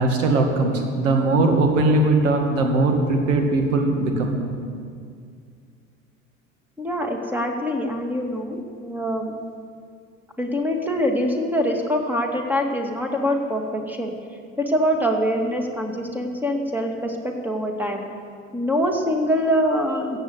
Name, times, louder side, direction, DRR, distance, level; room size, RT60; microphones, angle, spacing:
voice 1, 0.0-4.7, right 2 dB, 75° right, 3 dB, 2.1 m, -20 dB
voice 2, 6.8-9.3 10.4-14.1 14.6-18.0 18.5-20.2, equal, 5° right, 2 dB, 2.2 m, -24 dB
14.5 x 8.2 x 8.1 m, 2.2 s
figure-of-eight pair, 70°, 38 cm